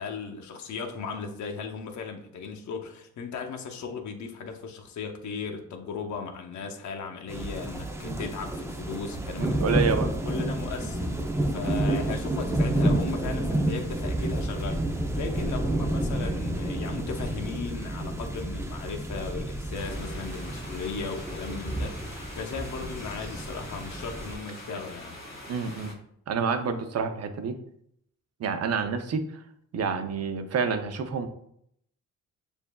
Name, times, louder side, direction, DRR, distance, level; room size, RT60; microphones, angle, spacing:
voice 1, 0.0-9.8 10.2-11.1 11.5-14.8 15.1-25.2, left 5 dB, 60° left, 2 dB, 0.8 m, -36 dB
sound 1, 7.3-24.4, right 1 dB, 10° right, 0.5 m, -30 dB
sound 2, 7.4-14.7, right 3 dB, 70° right, 1.0 m, -43 dB
voice 2, 9.4-10.1 25.5-25.9 26.3-27.6 28.4-29.4 29.7-31.3, right 5 dB, 50° right, 8 dB, 0.6 m, -28 dB
sound 3, 19.8-25.9, left 1 dB, 40° left, 1.6 m, -44 dB
6.8 x 2.6 x 2.2 m, 0.69 s
cardioid pair, 85°, 33 cm